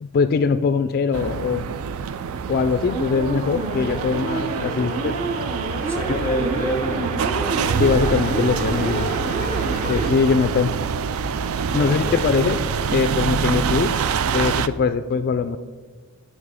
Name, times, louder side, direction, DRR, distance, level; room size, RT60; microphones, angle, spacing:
voice 1, 0.0-1.7 2.5-5.2 6.1-6.2 7.8-9.1 9.9-10.7 11.7-12.6 12.9-13.9 14.3-15.6, left 5 dB, 45° left, 11 dB, 0.3 m, -21 dB
sound 1, 1.1-14.7, right 6 dB, 70° right, 0.4 m, -26 dB
sound 2, 2.9-10.1, right 2 dB, 35° right, 1.0 m, -29 dB
voice 2, 5.8-7.5 11.7-12.2, equal, 15° right, 0 dB, 1.9 m, -28 dB
9.5 x 4.9 x 4.9 m, 1.4 s
head